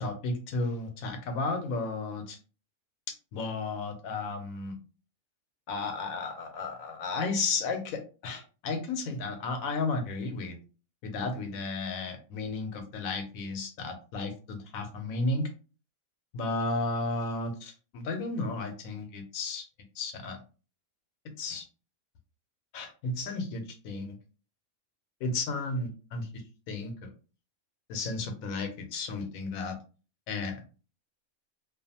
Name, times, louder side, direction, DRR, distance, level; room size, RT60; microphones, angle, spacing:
voice 1, 0.0-2.4 3.1-4.8 5.7-10.6 11.0-15.5 16.3-19.7 20.0-20.4 21.4-21.6 22.7-24.1 25.2-26.3 26.7-27.1 27.9-29.8 30.3-30.6, left 3 dB, 80° left, 6 dB, 1.0 m, -33 dB
2.5 x 2.3 x 2.7 m, 0.35 s
omnidirectional pair, 1.5 m